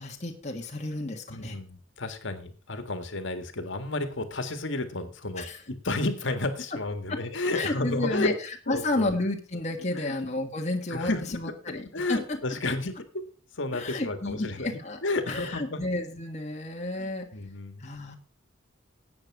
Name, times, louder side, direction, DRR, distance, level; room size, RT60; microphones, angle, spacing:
voice 1, 0.0-1.6 5.4-5.6 7.1-7.2 7.5-8.3 8.7-12.4 13.7-15.0 15.3-17.3 17.8-18.2, left 2 dB, 35° left, 1 dB, 1.5 m, -31 dB
voice 2, 1.3-8.3 8.7-9.1 10.0-10.2 10.9-11.5 11.9-13.0 13.6-14.7 15.0-15.8 17.0-17.8, left 2 dB, 65° left, 8 dB, 1.8 m, -32 dB
11.5 x 8.7 x 4.8 m, 0.39 s
head